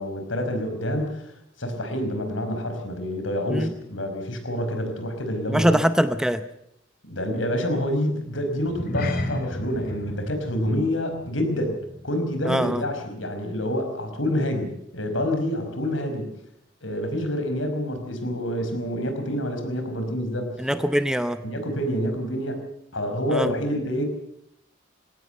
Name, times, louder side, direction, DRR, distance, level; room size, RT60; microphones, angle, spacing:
voice 1, 0.0-5.7 7.0-16.3 16.8-20.5 21.4-22.7 22.9-24.0, equal, 75° left, 6 dB, 5.1 m, -27 dB
voice 2, 5.5-6.4 12.5-12.8 20.6-21.4 23.3-23.5, equal, 5° right, 11 dB, 0.7 m, -23 dB
sound 1, 8.6-13.3 13.5-13.8 14.3-14.4, equal, 50° left, 2.9 m, -34 dB
21.0 x 17.5 x 8.0 m, 0.75 s
head